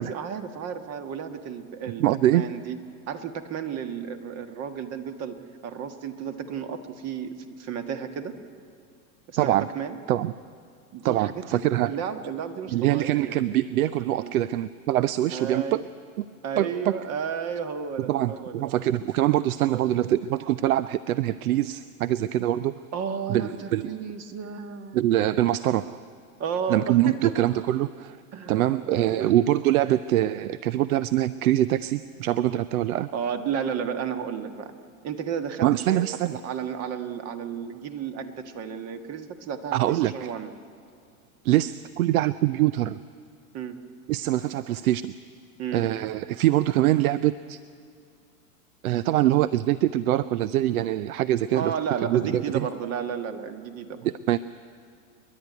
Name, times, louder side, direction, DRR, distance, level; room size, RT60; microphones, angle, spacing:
voice 1, 0.0-2.0 2.3-2.8 3.1-8.4 9.3-10.0 10.9-13.4 14.2-14.3 15.3-15.8 16.4-18.6 19.6-19.8 22.9-25.0 26.4-27.3 28.3-29.3 33.1-34.7 35.0-36.0 36.3-40.5 43.5-43.8 45.6-45.8 51.5-54.0, right 7 dB, 35° right, 9 dB, 1.5 m, -33 dB
voice 2, 2.0-2.5 9.4-9.7 10.1-10.3 11.0-11.9 12.7-15.8 16.2-16.3 16.6-16.7 18.1-22.7 23.3-23.9 24.9-26.0 26.7-28.2 28.5-33.1 35.6-36.3 39.7-40.3 41.4-43.0 44.1-45.0 45.7-47.6 48.8-51.7 52.0-52.7 54.0-54.4, right 13 dB, 75° right, 17 dB, 0.6 m, -24 dB
29.5 x 11.0 x 9.4 m, 2.2 s
hypercardioid pair, 120°, 44 cm